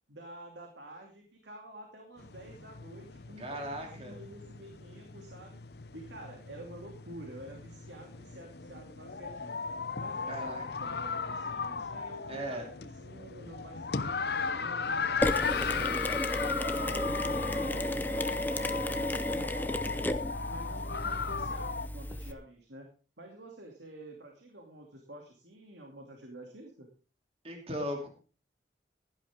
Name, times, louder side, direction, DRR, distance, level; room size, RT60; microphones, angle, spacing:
voice 1, 0.1-5.6 5.9-9.5 10.0-15.1 15.5-20.2 20.5-22.9 23.2-26.9, right 1 dB, 75° right, 2 dB, 2.6 m, -49 dB
sound 1, 2.2-21.9, left 5 dB, 60° left, 0.7 m, -37 dB
voice 2, 3.4-4.1 10.3-10.6 12.3-12.7 27.4-28.1, equal, 30° right, 2 dB, 2.9 m, -37 dB
Mechanisms, 15.2-22.3, left 1 dB, 10° left, 0.7 m, -33 dB
16.0 x 11.5 x 3.6 m, 0.36 s
head